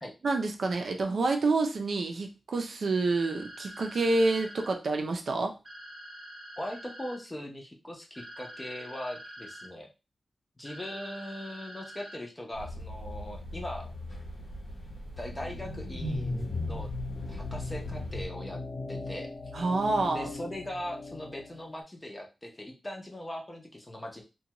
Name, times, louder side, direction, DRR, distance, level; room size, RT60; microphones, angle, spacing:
voice 1, 0.2-5.5 19.5-20.3, right 3 dB, 60° right, 3 dB, 0.5 m, -28 dB
sound 1, 3.1-4.7 5.6-7.2 8.1-9.7 10.6-12.2, equal, 20° right, 0.8 m, -46 dB
voice 2, 6.6-9.9 10.6-13.9 15.2-16.9 17.3-18.6 18.9-19.3 20.1-24.2, left 1 dB, 15° left, 1 dB, 0.6 m, -40 dB
sound 2, 12.5-18.3, left 1 dB, 85° left, 0.9 m, -41 dB
sound 3, 15.3-21.6, left 2 dB, 60° left, 0.9 m, -38 dB
2.6 x 2.2 x 2.8 m, 0.28 s
wide cardioid pair, 165°, 0 cm